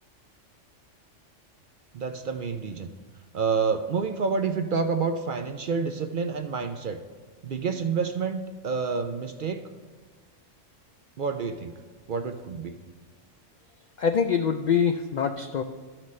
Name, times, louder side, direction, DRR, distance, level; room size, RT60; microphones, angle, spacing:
voice 1, 1.9-2.9 3.3-7.0 7.4-9.6 11.2-11.7 12.1-12.7, right 5 dB, 55° right, 7 dB, 0.6 m, -28 dB
voice 2, 14.0-15.6, left 7 dB, 90° left, 6 dB, 0.3 m, -24 dB
13.0 x 5.9 x 3.2 m, 1.5 s
omnidirectional pair, 1.3 m